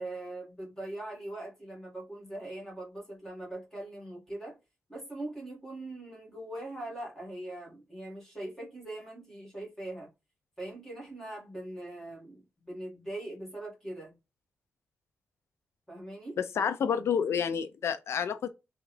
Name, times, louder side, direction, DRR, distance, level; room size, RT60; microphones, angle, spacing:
voice 1, 0.0-4.6 4.9-10.1 10.6-14.2 15.9-16.4, right 1 dB, 10° left, 1.8 m, -41 dB
voice 2, 16.4-18.5, left 7 dB, 60° left, 0.4 m, -29 dB
3.4 x 2.3 x 3.2 m
wide cardioid pair, 170°, 5 cm